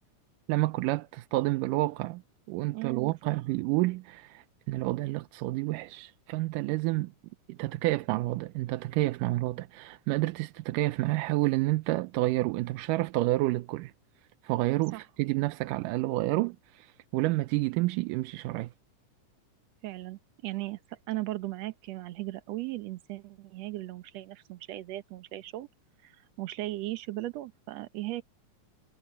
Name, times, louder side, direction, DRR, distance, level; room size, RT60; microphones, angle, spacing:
voice 1, 0.5-2.2 2.5-7.1 7.5-13.9 14.4-18.7, right 19 dB, 85° right, 2.2 m, -29 dB
voice 2, 2.7-3.1 14.9-15.0 19.8-25.7 26.0-26.1 26.4-28.2, right 17 dB, 65° right, 1.9 m, -37 dB
omnidirectional pair, 3.8 m